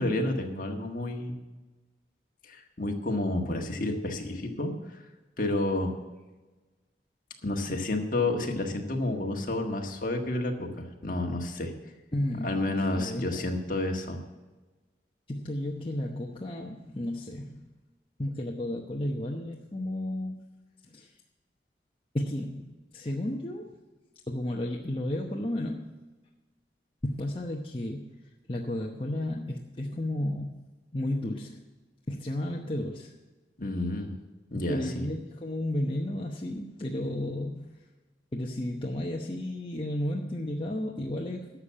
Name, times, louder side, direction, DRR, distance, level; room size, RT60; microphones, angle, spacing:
voice 1, 0.0-1.3 2.4-5.0 5.4-5.9 7.4-11.7 12.4-14.2 33.6-34.1 34.5-35.1, left 2 dB, 50° left, 2 dB, 1.6 m, -30 dB
voice 2, 12.1-12.6 12.9-13.4 15.3-17.6 18.2-20.4 20.9-21.1 22.1-23.7 24.3-26.0 27.0-28.1 28.5-30.5 30.9-31.6 32.1-33.1 34.7-37.7 38.3-41.5, left 1 dB, 30° left, -1 dB, 0.9 m, -33 dB
12.0 x 7.2 x 7.5 m, 1.2 s
head